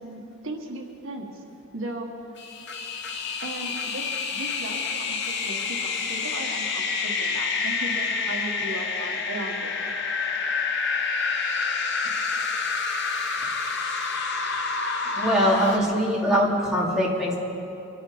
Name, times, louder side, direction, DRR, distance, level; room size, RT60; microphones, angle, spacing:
voice 1, 0.0-1.4 1.7-2.1 3.4-9.7, right 2 dB, 70° right, 2 dB, 1.6 m, -37 dB
sound 1, 2.4-15.8, left 4 dB, 55° left, 1.2 m, -28 dB
voice 2, 15.1-17.3, equal, 5° right, -6 dB, 2.4 m, -22 dB
25.0 x 11.0 x 5.1 m, 2.9 s
head